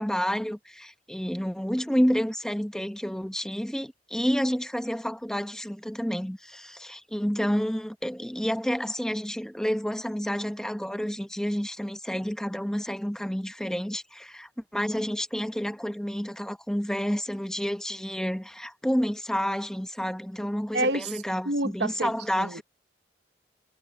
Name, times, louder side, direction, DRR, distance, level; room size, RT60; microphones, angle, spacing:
voice 1, 0.0-22.6, equal, 5° left, 0.9 m, -29 dB
voice 2, 20.7-21.1 21.4-22.1 22.4-22.6, right 2 dB, 70° right, 1.0 m, -28 dB
head